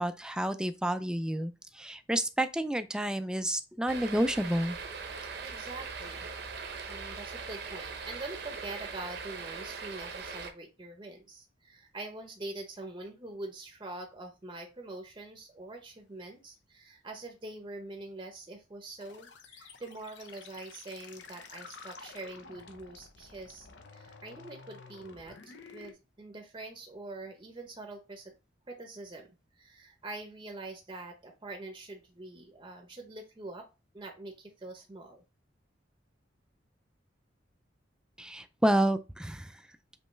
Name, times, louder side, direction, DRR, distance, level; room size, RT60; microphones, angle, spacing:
voice 1, 0.0-4.8 38.2-39.6, right 1 dB, 5° right, 0.3 m, -30 dB
sound 1, 3.9-10.5, right 5 dB, 65° right, 0.8 m, -41 dB
voice 2, 5.4-28.3 28.7-33.7 33.9-35.2, right 2 dB, 25° right, 0.7 m, -44 dB
sound 2, 19.0-25.9, left 5 dB, 75° left, 0.8 m, -51 dB
5.4 x 3.2 x 3.1 m
head